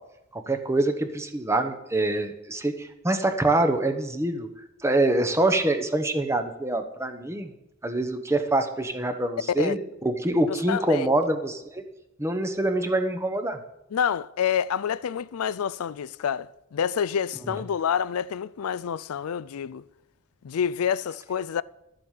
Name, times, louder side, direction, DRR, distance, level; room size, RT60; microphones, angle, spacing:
voice 1, 0.3-4.5 4.8-7.5 7.8-11.8 12.2-13.6, right 2 dB, 15° right, 1.0 m, -25 dB
voice 2, 10.5-11.1 13.9-19.8 20.4-21.6, left 8 dB, 90° left, 0.4 m, -28 dB
12.5 x 7.7 x 7.4 m
head